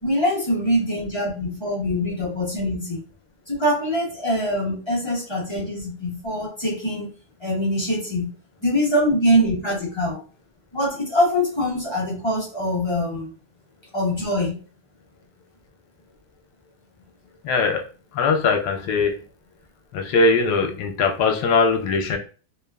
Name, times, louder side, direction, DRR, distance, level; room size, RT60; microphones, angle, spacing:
voice 1, 0.0-3.0 3.5-7.1 7.4-8.3 8.6-10.2 10.7-13.3 13.9-14.6, equal, 40° left, -5 dB, 0.4 m, -23 dB
voice 2, 17.4-17.8 18.1-19.2 19.9-22.2, left 4 dB, 80° left, 4 dB, 1.2 m, -20 dB
3.0 x 2.3 x 2.2 m, 0.36 s
omnidirectional pair, 1.8 m